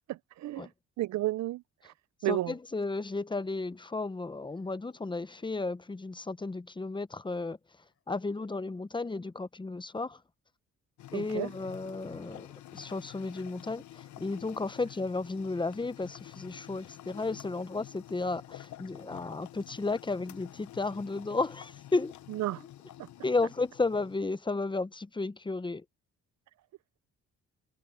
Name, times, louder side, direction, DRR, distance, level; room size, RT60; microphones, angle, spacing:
voice 1, 0.1-0.7 1.0-1.9 2.2-2.5 11.1-11.5 22.3-22.6 23.0-23.1, right 15 dB, 65° right, 0.6 m, -33 dB
voice 2, 2.3-7.6 8.1-10.2 11.1-22.1 23.2-25.8, left 3 dB, 15° left, 0.8 m, -33 dB
sound 1, 2.6-2.9 4.4-5.7 7.8-8.8 11.2-11.6 14.4-16.8 17.8-19.1, left 7 dB, 50° left, 7.8 m, -71 dB
sound 2, 11.0-24.2, left 13 dB, 70° left, 0.9 m, -49 dB
cardioid pair, 90°, 30 cm